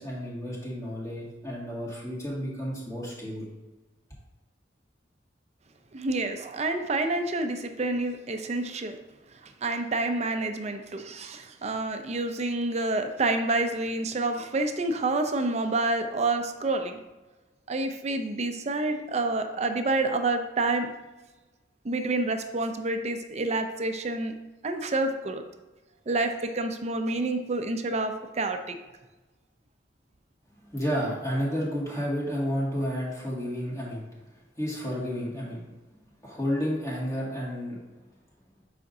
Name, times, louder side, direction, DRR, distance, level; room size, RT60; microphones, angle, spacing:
voice 1, 0.0-3.5 30.6-34.0 34.6-35.6 36.2-37.8, equal, 20° left, -6 dB, 2.0 m, -31 dB
voice 2, 5.9-9.0 9.4-17.0 17.7-20.9 21.8-24.3 24.6-25.4 26.1-28.8, right 2 dB, 40° right, 7 dB, 0.6 m, -28 dB
8.4 x 5.1 x 2.7 m, 1.2 s
head